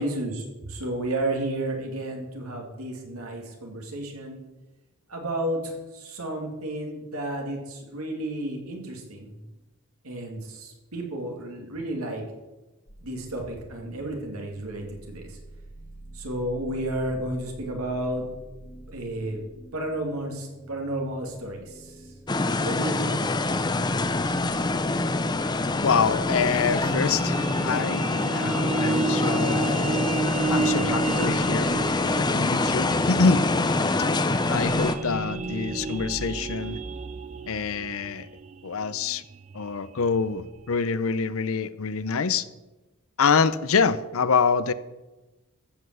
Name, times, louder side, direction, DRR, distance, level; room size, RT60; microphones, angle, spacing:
voice 1, 0.0-4.4 5.1-9.3 10.0-12.2 13.0-15.4 16.1-18.3 18.9-19.4 19.7-22.0 22.6-23.4, right 1 dB, 85° right, 2.7 m, -32 dB
sound 1, 12.9-32.2, right 1 dB, 35° left, 1.9 m, -48 dB
sound 2, 22.3-35.0, left 2 dB, 20° left, 0.5 m, -25 dB
voice 2, 25.8-27.4 27.6-28.0 28.3-30.0 30.5-31.7 32.1-33.5 34.5-36.8 37.5-38.3 38.6-39.2 39.5-42.5 43.2-44.7, left 5 dB, 70° left, 0.6 m, -25 dB
sound 3, 26.6-40.8, right 4 dB, 30° right, 0.4 m, -32 dB
13.5 x 5.5 x 7.8 m
head